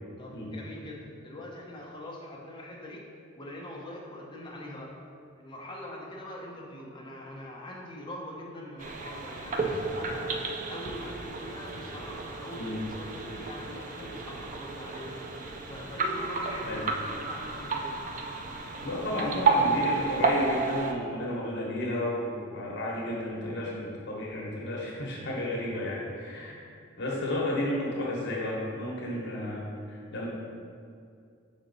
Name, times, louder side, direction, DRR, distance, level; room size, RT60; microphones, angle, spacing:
voice 1, 0.2-3.1 3.4-5.0 5.4-15.3 15.7-18.0 26.4-26.5, left 1 dB, 20° left, -2 dB, 0.8 m, -43 dB
sound 1, 8.8-20.9, right 4 dB, 40° right, 0.4 m, -31 dB
voice 2, 18.8-26.6 27.0-30.3, left 1 dB, 55° left, -4 dB, 1.1 m, -32 dB
5.8 x 4.1 x 4.0 m, 2.3 s
head